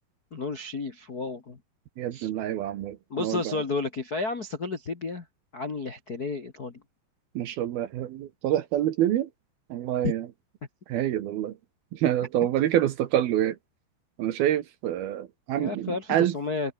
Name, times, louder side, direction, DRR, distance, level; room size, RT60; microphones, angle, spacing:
voice 1, 0.3-1.6 2.1-2.3 3.1-5.2 5.5-6.8 10.0-10.1 15.6-16.7, left 3 dB, 50° left, 1.1 m, -32 dB
voice 2, 2.0-3.6 7.4-9.3 9.7-10.3 10.9-11.5 11.9-13.6 14.2-16.3, right 12 dB, 65° right, 2.8 m, -27 dB
omnidirectional pair, 5.3 m